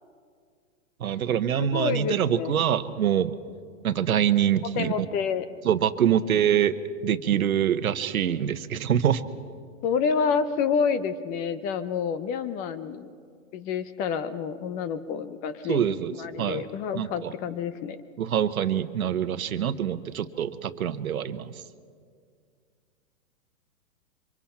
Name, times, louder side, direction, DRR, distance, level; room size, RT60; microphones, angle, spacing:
voice 1, 1.0-3.3 3.8-5.1 5.6-6.8 7.0-9.3 15.7-16.6 16.9-17.3 18.2-21.6, right 9 dB, 85° right, 12 dB, 1.2 m, -25 dB
voice 2, 1.6-2.5 4.8-5.5 9.8-13.1 13.5-18.0, left 6 dB, 20° left, 13 dB, 0.6 m, -28 dB
27.5 x 25.0 x 4.4 m, 2.1 s
hypercardioid pair, 140°, 41 cm